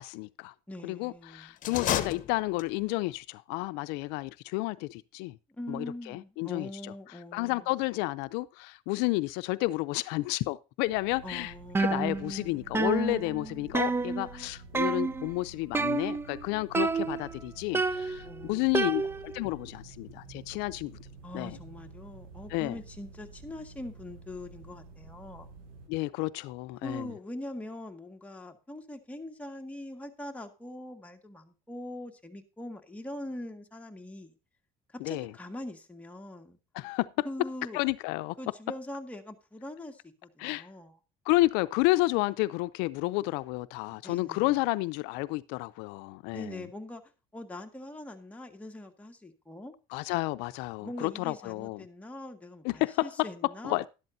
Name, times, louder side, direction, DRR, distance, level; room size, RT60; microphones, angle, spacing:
voice 1, 0.0-0.5 0.8-5.4 5.7-6.9 7.3-11.5 11.8-21.0 21.3-21.6 22.5-22.8 25.9-27.1 35.0-35.3 36.7-37.3 37.7-38.4 40.4-40.7 41.3-46.6 49.9-51.8 52.6-53.3 53.6-53.9, left 20 dB, 85° left, 0.5 m, -31 dB
voice 2, 0.7-1.5 5.5-7.7 11.2-12.0 18.2-19.0 21.2-25.5 26.8-34.3 34.9-36.6 37.2-37.8 38.4-41.0 43.9-44.5 46.3-47.0 47.3-49.7 50.8-53.8, left 1 dB, 10° left, 1.8 m, -42 dB
sound 1, 1.6-2.9, left 11 dB, 50° left, 1.0 m, -31 dB
sound 2, 10.8-25.9, right 3 dB, 65° right, 8.0 m, -50 dB
sound 3, 11.7-12.5 12.7-14.4 14.7-15.3 15.7-16.4 16.7-17.4 17.7-19.4, right 4 dB, 15° right, 0.4 m, -30 dB
12.0 x 11.5 x 2.7 m
cardioid pair, 120°, 17 cm